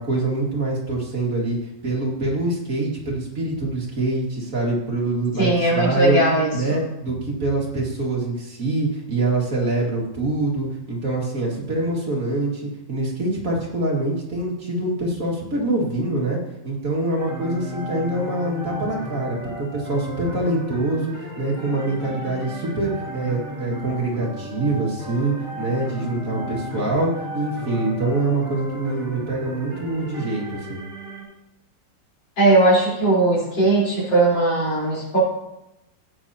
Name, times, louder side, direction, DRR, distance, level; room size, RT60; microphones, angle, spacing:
voice 1, 0.0-1.6 1.8-6.2 6.5-16.4 16.6-30.8, right 2 dB, 45° right, -3 dB, 2.5 m, -25 dB
voice 2, 5.4-6.8 32.4-35.2, right 2 dB, 70° left, -5 dB, 5.0 m, -19 dB
sound 1, 17.2-31.2, equal, 10° right, 3.7 m, -34 dB
16.0 x 8.9 x 2.9 m, 0.90 s
omnidirectional pair, 2.1 m